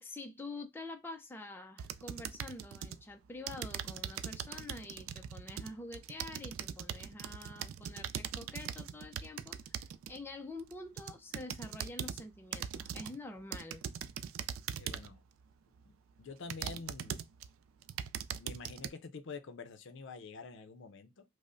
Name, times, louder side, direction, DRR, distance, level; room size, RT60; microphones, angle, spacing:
voice 1, 0.0-13.8, left 2 dB, 10° left, 0.4 m, -47 dB
sound 1, 1.8-3.0 3.5-10.2 10.7-12.2 12.5-13.2 13.5-15.2 15.8-15.9 16.5-17.5 17.8-18.9, right 9 dB, 70° right, 0.3 m, -41 dB
voice 2, 14.8-15.2 15.9-17.2 18.3-21.2, left 4 dB, 65° left, 0.5 m, -47 dB
5.1 x 2.1 x 2.5 m
head